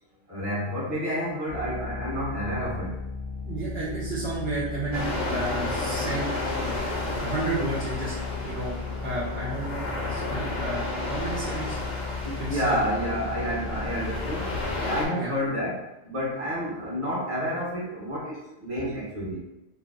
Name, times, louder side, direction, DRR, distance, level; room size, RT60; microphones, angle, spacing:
voice 1, 0.3-3.0 12.2-19.4, equal, 30° right, -6 dB, 0.9 m, -30 dB
sound 1, 1.5-14.9, left 4 dB, 35° left, 0.4 m, -36 dB
voice 2, 3.5-6.3 7.1-8.1 8.4-8.8 9.0-11.8 12.5-12.8 15.1-15.3, right 2 dB, 60° right, -8 dB, 1.0 m, -32 dB
sound 2, 4.9-15.0, left 2 dB, 75° left, 1.0 m, -32 dB
2.6 x 2.1 x 3.6 m, 0.94 s
omnidirectional pair, 1.3 m